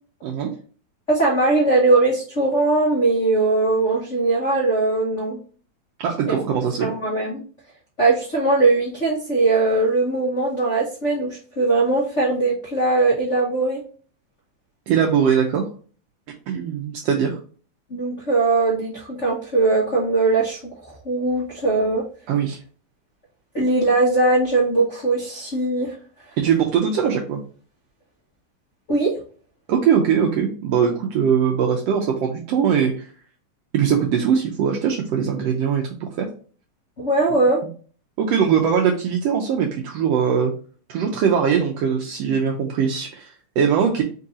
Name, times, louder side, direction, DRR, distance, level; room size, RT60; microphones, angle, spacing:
voice 1, 1.1-5.4 6.3-6.4 6.8-7.4 8.0-13.8 17.9-22.0 23.5-25.9 28.9-29.1 37.0-37.6, right 3 dB, 60° left, -5 dB, 0.7 m, -20 dB
voice 2, 6.0-6.9 14.9-15.7 16.5-17.4 22.3-22.6 26.4-27.4 29.7-32.9 33.7-35.9 36.2-36.3 38.2-40.5 40.9-43.3 43.6-44.0, right 7 dB, 80° right, 2 dB, 1.5 m, -21 dB
4.6 x 2.8 x 3.6 m, 0.40 s
omnidirectional pair, 3.4 m